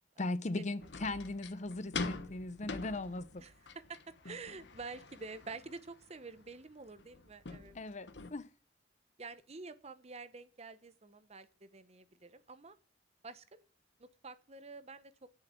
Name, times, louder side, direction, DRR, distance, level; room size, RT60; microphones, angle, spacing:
voice 1, 0.2-3.4 7.7-8.5, left 2 dB, 40° left, 0.7 m, -38 dB
sound 1, 0.8-8.3, left 3 dB, 80° left, 1.2 m, -45 dB
voice 2, 4.2-7.7 9.2-12.8 13.2-13.7 14.0-15.3, right 4 dB, 35° right, 0.9 m, -48 dB
10.5 x 6.8 x 7.4 m
head